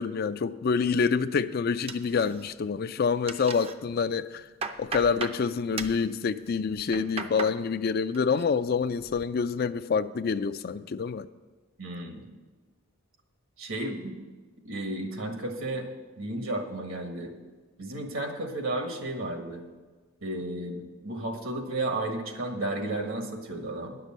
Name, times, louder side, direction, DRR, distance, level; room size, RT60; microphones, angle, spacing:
voice 1, 0.0-4.4 4.8-11.3, left 5 dB, 45° left, 0.4 m, -27 dB
sound 1, 1.9-2.7 3.0-3.7 4.2-5.4 5.8-6.0 6.7-7.6 7.9-8.4 8.8-9.3, right 4 dB, 25° right, 0.5 m, -37 dB
voice 2, 11.8-12.2 13.6-14.2 14.6-15.9 16.2-17.3 17.8-19.6 20.2-24.0, right 2 dB, 75° right, 1.6 m, -33 dB
10.5 x 6.7 x 7.5 m
head